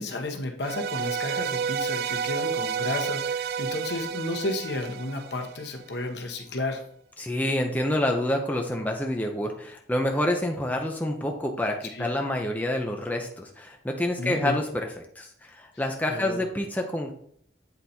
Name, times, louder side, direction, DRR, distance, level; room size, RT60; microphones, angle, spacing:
voice 1, 0.0-6.8 11.9-12.1 14.2-14.6 16.1-16.4, left 2 dB, 65° left, 4 dB, 1.1 m, -32 dB
sound 1, 0.6-5.8, right 7 dB, 55° right, 0.3 m, -30 dB
voice 2, 7.2-14.9 15.2-17.1, left 1 dB, 10° left, 2 dB, 0.6 m, -28 dB
8.1 x 4.1 x 4.3 m, 0.63 s
head